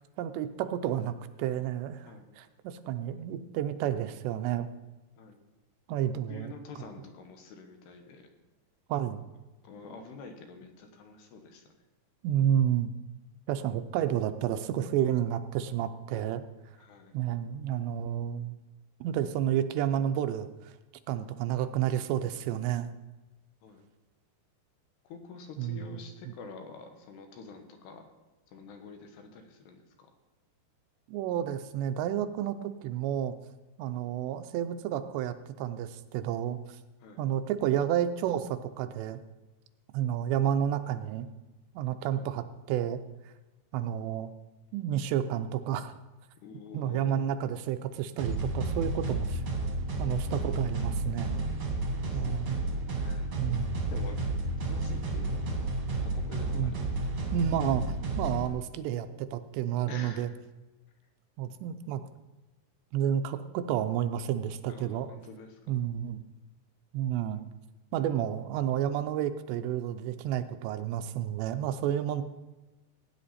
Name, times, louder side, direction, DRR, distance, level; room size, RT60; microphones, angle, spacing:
voice 1, 0.2-4.7 5.9-6.5 8.9-9.2 12.2-12.9 13.5-16.4 17.1-18.6 19.0-20.5 21.1-22.9 25.6-26.3 31.1-33.3 33.8-36.6 37.2-39.2 39.9-41.3 41.8-43.0 43.7-44.3 44.7-45.9 46.7-49.4 50.0-51.4 52.1-52.6 53.4-53.8 56.6-56.7 57.3-60.3 61.4-62.0 62.9-65.1 65.7-66.2 66.9-67.4 67.9-72.2, right 10 dB, 85° right, 9 dB, 2.9 m, -30 dB
voice 2, 6.3-8.3 9.6-11.6 16.8-17.1 23.6-23.8 25.0-28.1 28.5-30.1 37.0-37.2 42.2-42.3 46.4-47.1 51.9-52.4 53.0-53.3 53.9-54.2 54.6-55.4 56.0-57.2 59.9-60.3 64.7-65.6, left 4 dB, 75° left, 5 dB, 3.3 m, -47 dB
sound 1, 48.2-58.5, right 2 dB, 45° right, 1.7 m, -31 dB
16.5 x 9.5 x 4.2 m, 1.1 s
omnidirectional pair, 4.9 m